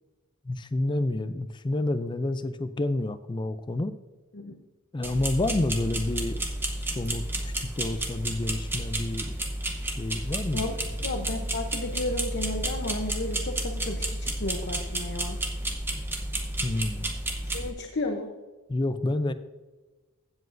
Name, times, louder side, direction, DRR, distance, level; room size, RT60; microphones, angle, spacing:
voice 1, 0.4-3.9 4.9-6.4 6.8-9.4 9.8-10.8 16.6-17.1 18.7-19.3, left 2 dB, 20° left, 12 dB, 0.4 m, -29 dB
sound 1, 5.0-17.7, right 1 dB, 10° right, 0.8 m, -31 dB
voice 2, 11.0-15.4 17.4-18.3, left 2 dB, 50° left, 3 dB, 0.8 m, -33 dB
15.0 x 7.8 x 2.6 m, 1.2 s
head